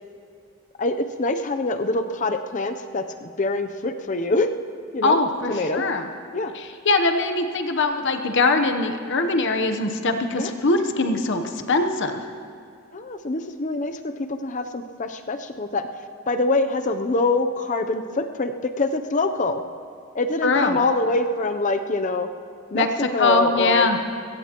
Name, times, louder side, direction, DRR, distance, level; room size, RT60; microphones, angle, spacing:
voice 1, 0.8-4.5 4.9-5.2 5.5-5.8 6.3-6.5 10.3-10.8 12.9-15.9 16.3-19.6 20.1-22.3 22.7-22.9 23.1-23.9, left 2 dB, 35° left, 8 dB, 0.6 m, -25 dB
voice 2, 5.0-6.1 6.5-12.2 20.4-20.8 22.7-22.9 23.2-24.0, left 3 dB, 55° left, 6 dB, 0.9 m, -22 dB
22.0 x 16.5 x 3.0 m, 2.4 s
head